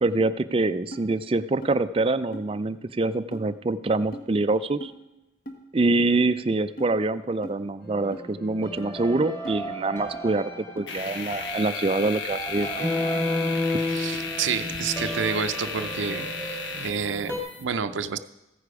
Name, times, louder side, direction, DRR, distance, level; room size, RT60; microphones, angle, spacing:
voice 1, 0.0-4.9 5.7-10.5 10.8-12.8, right 2 dB, 30° right, 12 dB, 0.4 m, -25 dB
sound 1, 0.9-1.1 1.6-1.8 2.3-2.5 3.3-3.4 4.1-4.3 4.8-4.9 5.5-5.6 6.1-6.2 6.8-6.9 7.4-7.6 8.1-8.3 8.8-8.9 9.4-9.6 10.1-10.2 10.8-10.9, right 1 dB, 50° left, 1.5 m, -39 dB
sound 2, 7.8-17.4, left 1 dB, 10° left, 2.2 m, -32 dB
sound 3, 10.9-17.6, left 5 dB, 70° left, 1.3 m, -35 dB
voice 2, 13.8-18.2, right 6 dB, 80° right, 11 dB, 0.5 m, -29 dB
15.0 x 9.8 x 4.8 m, 0.97 s
head